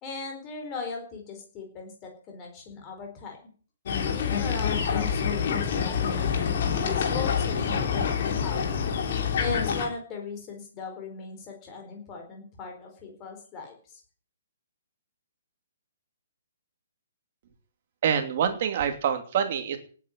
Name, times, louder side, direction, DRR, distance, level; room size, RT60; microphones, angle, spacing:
voice 1, 0.0-3.5 4.1-6.3 6.8-8.8 9.4-14.0, left 4 dB, 15° left, 2 dB, 4.5 m, -39 dB
sound 1, 3.9-9.9, left 6 dB, 35° left, 3.6 m, -26 dB
voice 2, 18.0-19.8, right 8 dB, 30° right, 6 dB, 2.8 m, -26 dB
18.0 x 9.3 x 7.6 m, 0.43 s
hypercardioid pair, 180°, 0 cm